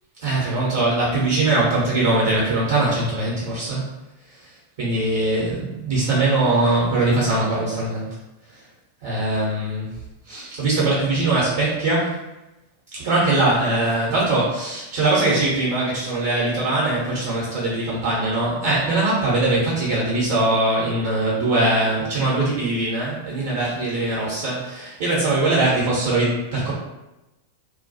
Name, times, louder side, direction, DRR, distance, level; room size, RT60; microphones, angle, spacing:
voice 1, 0.2-3.8 4.8-8.1 9.0-9.9 10.3-12.2 12.9-26.7, right 2 dB, 50° right, -7 dB, 0.8 m, -21 dB
2.2 x 2.2 x 2.6 m, 0.98 s
figure-of-eight pair, 90°, 0 cm